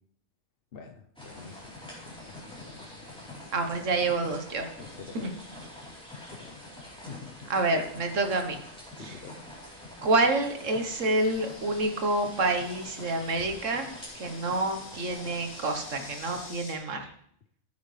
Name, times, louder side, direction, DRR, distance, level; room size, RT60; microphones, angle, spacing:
voice 1, 0.7-1.8 2.1-3.4 4.8-5.3 6.2-6.6 7.1-7.3 8.9-9.4, left 5 dB, 50° left, 4 dB, 0.9 m, -47 dB
sound 1, 1.2-16.5, left 1 dB, 5° left, 3.8 m, -46 dB
voice 2, 3.5-4.7 5.1-5.3 7.5-8.6 9.0-9.2 10.0-17.1, right 2 dB, 65° right, 6 dB, 1.6 m, -28 dB
Insect, 10.8-16.8, left 2 dB, 85° left, 2.3 m, -48 dB
14.0 x 8.6 x 3.3 m, 0.65 s
omnidirectional pair, 1.4 m